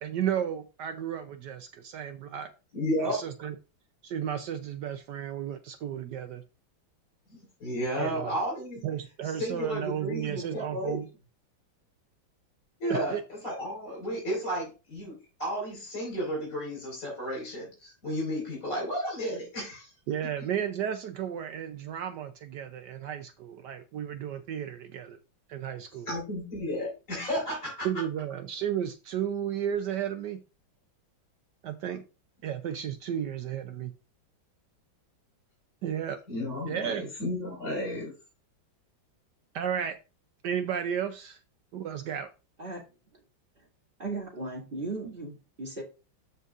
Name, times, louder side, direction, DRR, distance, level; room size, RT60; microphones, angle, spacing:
voice 1, 0.0-2.5 3.0-3.5 4.0-6.4 8.0-8.3 8.8-11.1 12.9-13.2 20.1-25.2 25.5-26.1 27.8-30.4 31.6-32.0 32.4-33.9 35.8-36.2 36.7-37.1 39.5-40.0 40.4-41.4 41.7-42.3, right 9 dB, 70° right, 9 dB, 1.2 m, -33 dB
voice 2, 2.7-3.2 7.3-8.8 9.2-11.0 12.8-19.9 26.1-27.9 36.3-38.1, equal, 45° left, -3 dB, 4.9 m, -33 dB
voice 3, 44.0-45.8, right 3 dB, 25° right, -1 dB, 2.5 m, -36 dB
13.5 x 5.5 x 2.4 m, 0.30 s
omnidirectional pair, 2.1 m